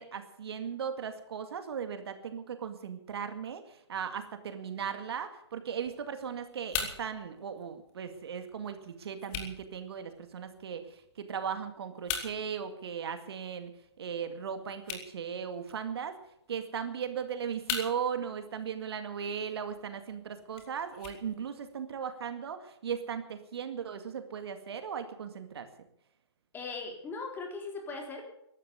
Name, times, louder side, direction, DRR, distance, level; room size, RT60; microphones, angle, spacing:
voice 1, 0.0-13.7 14.0-16.2 16.5-25.7, right 7 dB, 60° right, 8 dB, 2.1 m, -37 dB
sound 1, 5.8-21.8, left 7 dB, 30° left, 3.3 m, -44 dB
voice 2, 26.5-28.3, left 4 dB, 15° left, 3 dB, 3.6 m, -39 dB
14.5 x 12.0 x 8.1 m, 0.78 s
hypercardioid pair, 135°, 15 cm